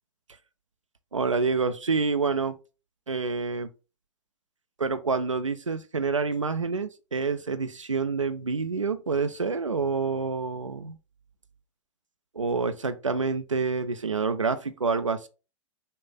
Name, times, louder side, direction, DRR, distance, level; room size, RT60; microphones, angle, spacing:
voice 1, 1.1-2.6 3.1-3.7 4.8-11.0 12.3-15.3, right 4 dB, 85° right, 0.4 m, -27 dB
5.4 x 2.5 x 3.9 m
figure-of-eight pair, 100°, 16 cm